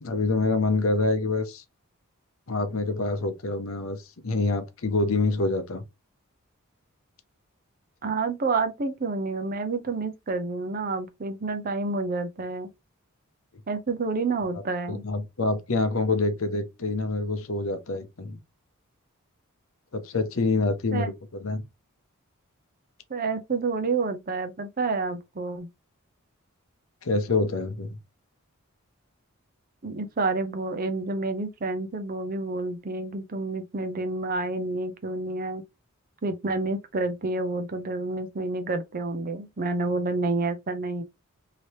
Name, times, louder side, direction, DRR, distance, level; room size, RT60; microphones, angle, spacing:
voice 1, 0.0-1.6 2.5-5.8 14.9-18.4 19.9-21.6 27.0-28.0, left 3 dB, 65° left, 0.7 m, -26 dB
voice 2, 8.0-12.7 13.7-15.0 20.9-21.1 23.1-25.7 29.8-35.6 36.2-41.0, right 3 dB, 40° right, 0.6 m, -29 dB
3.2 x 2.9 x 2.8 m
head